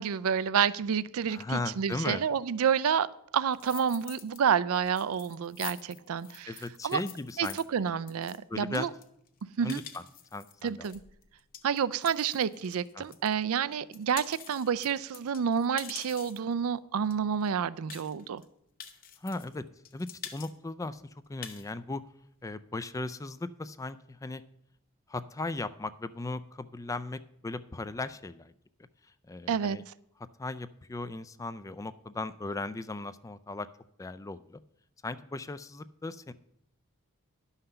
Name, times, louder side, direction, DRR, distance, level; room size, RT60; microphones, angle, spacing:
voice 1, 0.0-3.1 3.3-6.5 6.8-7.0 7.4-8.9 9.6-9.8 10.6-11.0 11.6-18.4 29.5-29.8, right 7 dB, 70° right, 18 dB, 0.4 m, -29 dB
voice 2, 1.3-2.2 6.5-7.9 8.5-8.9 9.6-10.0 10.3-10.9 13.0-13.1 19.2-19.7 19.9-21.0 21.3-22.0 22.4-24.4 25.1-28.5 29.3-29.8 30.4-33.7 34.0-34.6 35.0-36.3, left 2 dB, 15° left, 14 dB, 0.3 m, -37 dB
sound 1, 3.5-4.4 4.7-13.3 13.7-16.5 17.1-17.2 17.4-17.5 17.9-18.4 18.8-19.6 19.8-20.5 20.8-20.9 21.2-21.7, left 9 dB, 40° left, 0.9 m, -46 dB
11.0 x 5.7 x 6.7 m, 0.74 s
head